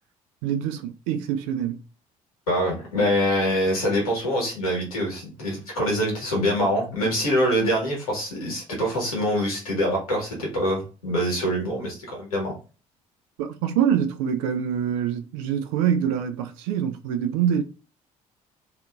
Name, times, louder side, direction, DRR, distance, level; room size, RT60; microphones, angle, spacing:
voice 1, 0.4-1.8 13.4-17.6, right 9 dB, 65° right, 0.4 m, -25 dB
voice 2, 2.5-12.5, equal, 80° left, 1.2 m, -24 dB
2.6 x 2.4 x 2.3 m
figure-of-eight pair, 50°, 18 cm